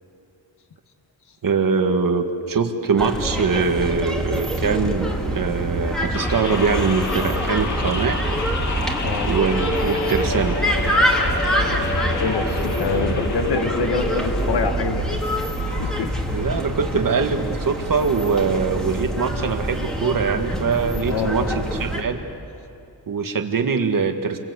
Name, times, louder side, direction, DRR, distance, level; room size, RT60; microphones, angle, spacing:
voice 1, 1.4-8.2 9.2-10.6 15.6-15.8 16.3-22.2 23.1-24.4, right 5 dB, 55° right, 6 dB, 1.9 m, -22 dB
sound 1, 3.0-22.0, equal, ahead, 2.6 m, -25 dB
sound 2, 6.1-14.7, left 3 dB, 50° left, 2.8 m, -29 dB
voice 2, 12.2-15.2 15.8-16.1 16.9-17.0 21.1-21.6, left 5 dB, 90° left, 6 dB, 1.9 m, -26 dB
28.5 x 23.0 x 8.2 m, 2.7 s
wide cardioid pair, 155°, 39 cm